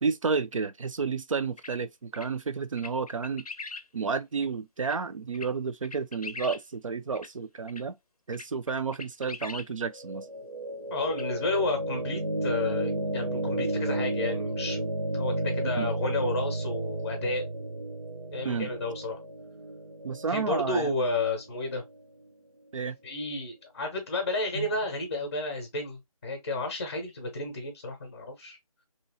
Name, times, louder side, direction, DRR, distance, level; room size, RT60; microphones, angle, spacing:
voice 1, 0.0-3.4 3.9-8.0 8.3-10.3 15.7-15.9 18.4-18.7 20.0-20.9 22.7-23.0 24.5-24.7, right 5 dB, 60° right, 0.4 m, -31 dB
sound 1, 1.6-1.7 2.1-2.3 2.8-3.8 4.4-4.5 4.8-5.0 5.3-5.5 5.8-6.6 7.1-7.3 7.7-7.8 8.3-9.7 11.1-11.2, left 3 dB, 85° left, 0.6 m, -41 dB
sound 2, 9.9-22.0, right 1 dB, 90° right, 0.9 m, -33 dB
voice 2, 10.9-17.7 18.3-19.2 20.3-21.8 23.0-28.6, left 2 dB, 25° left, 0.6 m, -32 dB
2.8 x 2.4 x 2.6 m
figure-of-eight pair, 160°, 19 cm